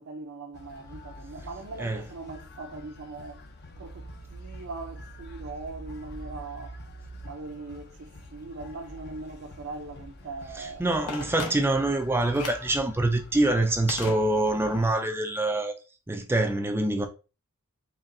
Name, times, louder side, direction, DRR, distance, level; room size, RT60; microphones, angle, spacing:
voice 1, 0.0-3.4 3.8-6.8 7.2-10.8, right 3 dB, 60° right, 0.6 m, -40 dB
sound 1, 0.5-14.9, equal, 45° left, 0.6 m, -45 dB
voice 2, 10.6-15.7 16.1-17.1, right 2 dB, 10° right, 0.3 m, -25 dB
Telephone, 11.1-11.9 12.3-12.8 13.9-14.7 15.0-15.1, left 4 dB, 90° left, 0.9 m, -38 dB
4.1 x 3.1 x 2.6 m
head